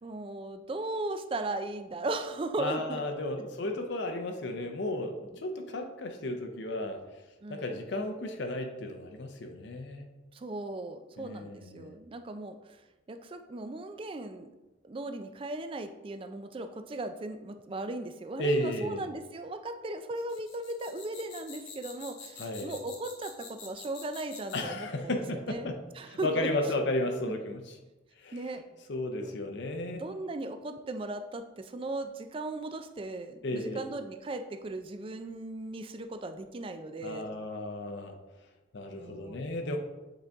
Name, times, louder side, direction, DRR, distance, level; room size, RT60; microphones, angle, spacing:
voice 1, 0.0-3.0 5.3-5.4 7.4-7.8 10.3-12.6 13.1-14.5 14.8-25.7 26.0-26.5 28.3-28.6 29.2-29.4 30.0-37.3 38.9-39.4, right 2 dB, 25° right, 7 dB, 0.3 m, -37 dB
voice 2, 2.6-7.0 7.5-10.1 11.2-11.9 18.4-19.0 22.4-22.7 24.5-27.8 28.2-28.6 28.9-30.0 33.4-33.8 37.0-38.2 38.7-39.8, left 1 dB, 60° left, 5 dB, 0.6 m, -34 dB
sound 1, 20.2-24.8, left 5 dB, 75° left, 1.4 m, -47 dB
8.0 x 3.8 x 3.5 m, 1.1 s
head